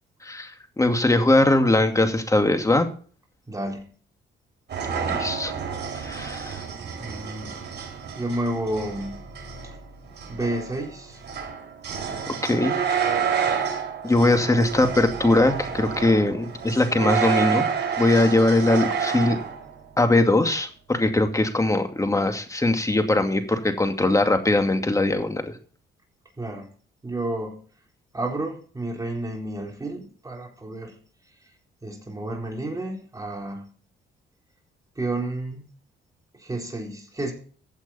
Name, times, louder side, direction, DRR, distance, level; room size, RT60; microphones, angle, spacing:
voice 1, 0.2-2.9 5.1-5.5 5.9-6.6 12.4-13.7 14.0-17.7 18.0-19.4 20.0-25.6, left 2 dB, 15° left, 6 dB, 2.4 m, -21 dB
voice 2, 3.5-3.9 7.0-7.9 8.2-9.3 9.6-9.8 10.3-11.2 26.4-26.8 27.0-27.6 28.1-31.0 31.3-31.5 31.8-33.7 35.0-35.7 36.3-37.3, right 1 dB, 15° right, 1 dB, 4.1 m, -31 dB
sound 1, 4.7-19.7, right 7 dB, 60° right, 5.5 m, -29 dB
15.5 x 8.1 x 4.3 m, 0.43 s
cardioid pair, 90°, 20 cm